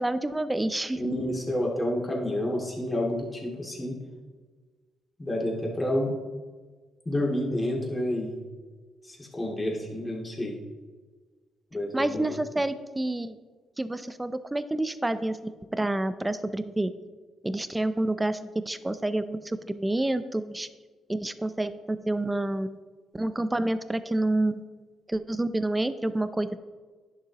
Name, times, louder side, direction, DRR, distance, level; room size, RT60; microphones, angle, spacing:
voice 1, 0.0-1.0 11.9-13.4 13.8-16.9 17.4-20.7 21.1-22.8 23.1-24.6 25.1-26.6, right 1 dB, 15° right, 12 dB, 0.5 m, -28 dB
voice 2, 1.0-4.0 5.2-6.1 7.1-8.4 9.0-10.5 11.7-12.4, left 1 dB, 20° left, -2 dB, 2.2 m, -29 dB
10.5 x 6.7 x 2.9 m, 1.4 s
cardioid pair, 90°, 0 cm